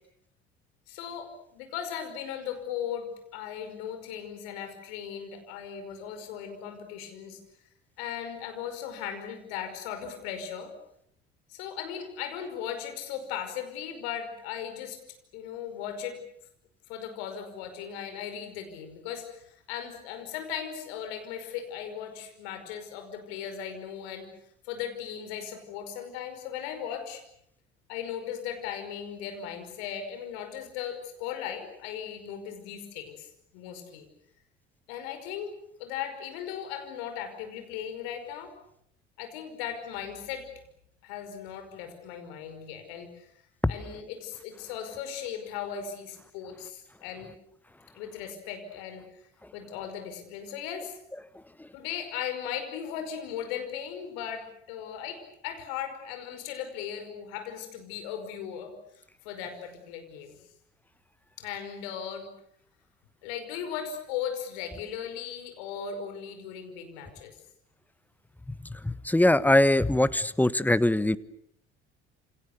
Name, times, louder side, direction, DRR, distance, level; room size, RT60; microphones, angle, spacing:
voice 1, 0.9-7.4 8.0-10.7 11.5-15.0 15.3-16.2 16.9-24.3 24.6-27.2 27.9-34.1 34.9-35.5 35.8-38.5 39.2-40.5 41.0-43.3 43.7-47.3 47.9-49.1 49.5-51.0 51.7-60.4 61.4-62.3 63.2-67.4, left 8 dB, 65° left, 7 dB, 5.4 m, -37 dB
voice 2, 68.8-71.2, left 1 dB, 5° left, 16 dB, 1.2 m, -22 dB
28.5 x 27.5 x 6.8 m, 0.72 s
figure-of-eight pair, 55°, 33 cm